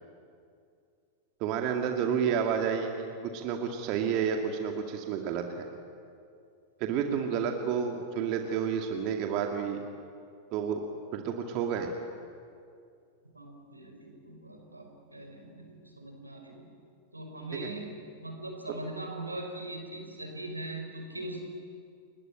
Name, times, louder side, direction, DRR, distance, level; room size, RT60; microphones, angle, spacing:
voice 1, 1.4-3.1 3.3-5.7 6.8-9.8 10.5-10.9 11.1-11.9 17.5-17.7, right 7 dB, 40° right, 4 dB, 2.2 m, -30 dB
voice 2, 13.3-16.6 17.1-21.4, right 1 dB, 85° right, 2 dB, 5.5 m, -41 dB
29.5 x 21.5 x 8.9 m, 2.4 s
figure-of-eight pair, 90°, 0 cm